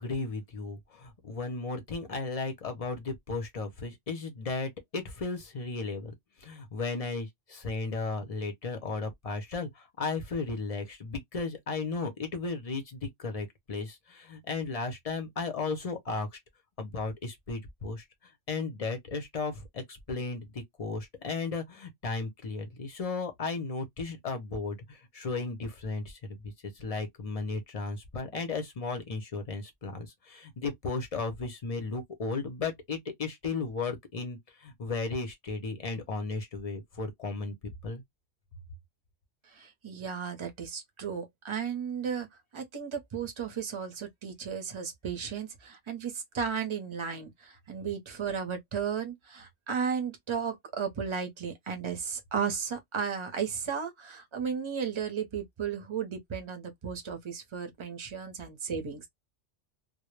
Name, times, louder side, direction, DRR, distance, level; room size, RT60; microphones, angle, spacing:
voice 1, 0.0-6.1 6.4-16.4 16.8-18.0 18.5-37.5 37.8-38.0, left 3 dB, 50° left, 0.4 m, -35 dB
voice 2, 39.5-42.3 42.5-59.1, right 7 dB, 35° right, 0.5 m, -34 dB
2.1 x 2.0 x 3.0 m
omnidirectional pair, 1.3 m